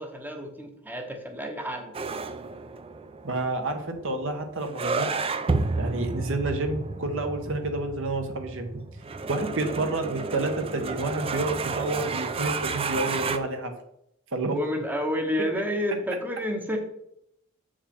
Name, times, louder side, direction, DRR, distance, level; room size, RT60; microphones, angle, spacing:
voice 1, 0.0-1.9 14.5-16.8, equal, 10° right, 3 dB, 0.8 m, -30 dB
sound 1, 1.9-13.4, right 4 dB, 25° right, 0.4 m, -31 dB
voice 2, 3.2-5.1 5.8-8.7 9.3-13.7 14.3-14.6, right 2 dB, 65° right, 5 dB, 1.1 m, -29 dB
7.2 x 5.0 x 4.3 m, 0.78 s
head